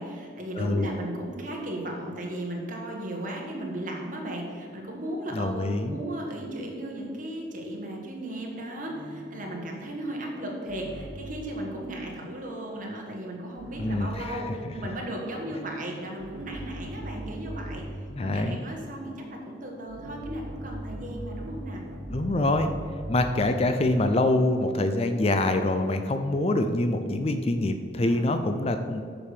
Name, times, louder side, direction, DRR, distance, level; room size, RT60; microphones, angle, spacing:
voice 1, 0.0-17.8 18.2-21.8 28.0-28.4, right 1 dB, 45° right, 0 dB, 1.5 m, -36 dB
voice 2, 0.6-0.9 5.3-6.0 13.8-14.2 18.1-18.6 22.1-22.7 23.1-29.0, left 2 dB, 30° left, 7 dB, 0.4 m, -25 dB
sound 1, 8.8-11.5 13.6-14.4 15.2-18.2 19.9-23.8, right 1 dB, 70° right, 1.0 m, -40 dB
7.2 x 5.1 x 6.6 m, 2.2 s
head